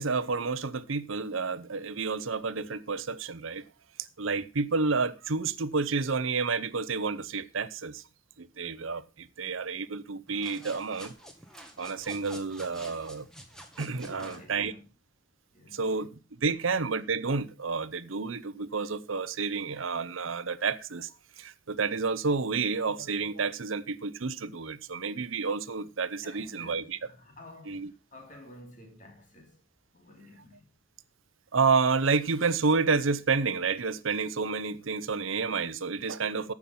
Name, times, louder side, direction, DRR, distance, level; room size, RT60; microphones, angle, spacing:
voice 1, 0.0-3.6 4.0-8.0 8.4-11.1 11.8-13.3 13.8-14.7 15.7-21.1 21.4-27.0 27.7-27.9 31.5-36.5, right 4 dB, 90° right, 0.8 m, -30 dB
sound 1, 10.3-14.5, equal, 5° left, 1.7 m, -48 dB
voice 2, 14.0-14.9 15.5-15.8 16.5-16.6 26.2-29.6 29.9-30.6, left 1 dB, 40° left, 3.1 m, -51 dB
14.5 x 6.0 x 5.5 m
head